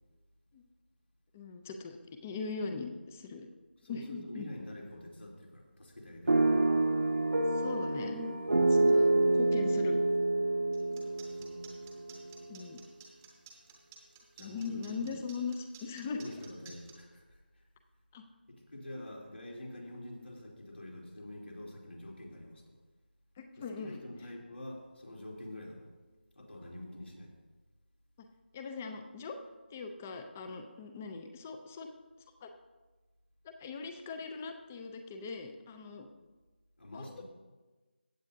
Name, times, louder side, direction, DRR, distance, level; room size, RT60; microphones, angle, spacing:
voice 1, 1.3-3.5 3.9-4.5 7.5-8.3 8.7-9.1 9.3-10.0 12.5-12.8 14.4-16.2 18.1-18.2 23.4-24.0 28.5-29.4 29.7-31.9 32.4-32.5 33.4-36.1 36.9-37.2, left 4 dB, 10° left, 6 dB, 0.4 m, -40 dB
voice 2, 3.8-6.5 8.9-9.1 11.3-11.6 14.3-15.1 16.1-17.6 18.5-22.7 23.6-25.9 26.3-27.3 36.8-37.2, left 1 dB, 80° left, -2 dB, 3.2 m, -46 dB
sound 1, 6.3-12.3, right 2 dB, 65° right, 0.8 m, -27 dB
sound 2, 10.7-16.9, right 7 dB, 10° right, 0.8 m, -54 dB
15.5 x 8.1 x 2.6 m, 1.2 s
figure-of-eight pair, 165°, 6 cm